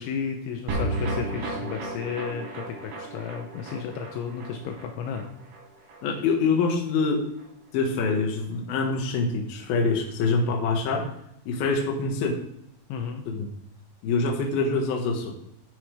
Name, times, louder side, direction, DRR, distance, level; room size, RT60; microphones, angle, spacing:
voice 1, 0.0-5.3 12.9-13.2, left 7 dB, 80° left, 3 dB, 3.1 m, -33 dB
sound 1, 0.7-7.1 7.4-7.5 7.8-7.9, right 1 dB, 70° right, 5.6 m, -34 dB
voice 2, 6.0-7.3 7.7-11.1 11.5-12.4 13.3-13.5 14.0-15.4, left 4 dB, 60° left, 1 dB, 3.0 m, -25 dB
13.0 x 9.0 x 3.5 m, 0.74 s
omnidirectional pair, 5.6 m